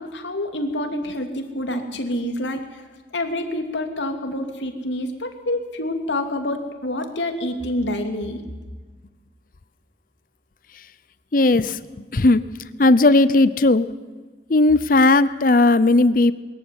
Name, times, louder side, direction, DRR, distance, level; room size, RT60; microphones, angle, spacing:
voice 1, 0.0-2.8 3.1-8.4, left 1 dB, 85° left, 5 dB, 2.9 m, -27 dB
voice 2, 11.3-11.8 12.1-12.4 12.8-13.9 14.5-16.3, left 2 dB, 50° left, 15 dB, 0.7 m, -16 dB
22.5 x 14.5 x 9.6 m, 1.4 s
head